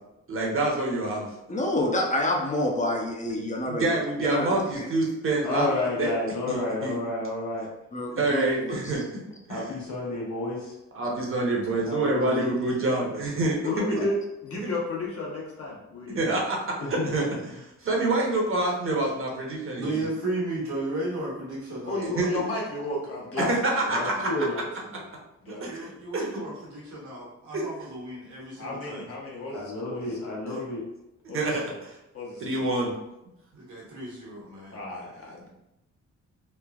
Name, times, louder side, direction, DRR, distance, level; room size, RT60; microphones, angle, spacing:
voice 1, 0.3-1.3 3.7-5.7 6.0-6.1 6.5-7.0 8.1-9.2 9.5-9.6 10.9-13.6 16.1-16.6 16.9-17.2 17.8-20.0 22.2-22.3 23.5-24.4 25.6-26.3 27.5-27.6 31.3-31.6 32.4-32.9, right 2 dB, 45° right, -1 dB, 0.8 m, -26 dB
voice 2, 1.5-3.9 4.2-4.9 7.9-8.8, left 1 dB, 25° left, 0 dB, 0.5 m, -28 dB
voice 3, 5.4-7.7 9.5-10.8 11.9-12.5 13.9-14.1 16.8-17.3 23.4-23.5 23.9-24.5 29.5-30.8, left 2 dB, 75° left, -4 dB, 1.0 m, -30 dB
voice 4, 13.6-16.2 19.0-19.1 21.9-25.1 25.4-25.9 28.6-30.2 31.3-31.8 32.1-32.6 34.7-35.5, left 2 dB, 50° left, -3 dB, 1.0 m, -34 dB
voice 5, 19.8-22.1 25.6-29.0 33.5-34.8, right 2 dB, 80° right, -4 dB, 1.1 m, -34 dB
3.1 x 2.1 x 2.3 m, 0.90 s
cardioid pair, 80°, 30 cm